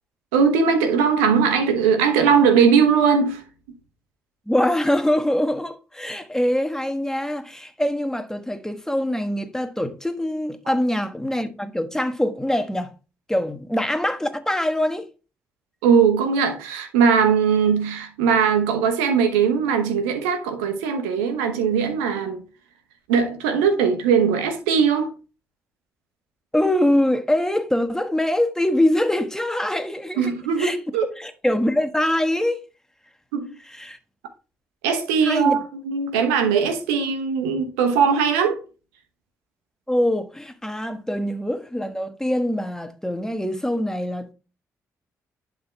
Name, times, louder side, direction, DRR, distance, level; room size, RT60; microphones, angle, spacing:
voice 1, 0.3-3.4 10.7-10.8 15.8-22.4 23.1-25.1 30.2-31.1 33.3-33.5 34.8-38.6, right 6 dB, 85° right, 1.0 m, -20 dB
voice 2, 4.5-12.9 13.3-15.1 26.5-30.8 31.2-32.6 33.7-34.0 35.2-35.6 39.9-44.3, left 1 dB, 5° left, 1.3 m, -23 dB
11.0 x 3.8 x 3.4 m
hypercardioid pair, 40°, 7 cm